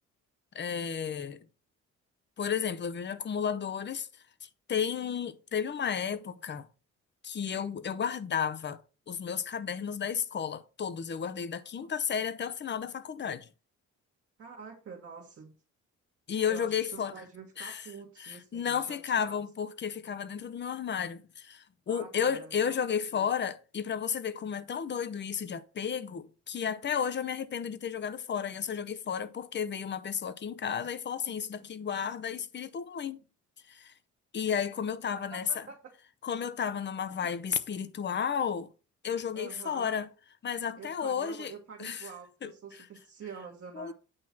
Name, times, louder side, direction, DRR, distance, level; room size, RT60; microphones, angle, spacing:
voice 1, 0.5-1.5 2.4-4.1 4.4-6.7 7.2-8.8 9.1-13.5 16.3-17.1 17.6-17.9 18.2-33.2 33.7-33.9 34.3-35.7 36.2-38.7 39.0-40.1 40.4-41.5 41.8-42.1 42.4-42.5 43.7-43.9, left 7 dB, 35° left, 0.7 m, -33 dB
voice 2, 14.4-15.5 16.5-19.4 21.9-22.8 23.1-23.3 35.3-35.9 39.3-40.0 40.8-43.9, right 5 dB, 50° right, 1.4 m, -46 dB
8.7 x 3.1 x 5.8 m
cardioid pair, 90°, 30 cm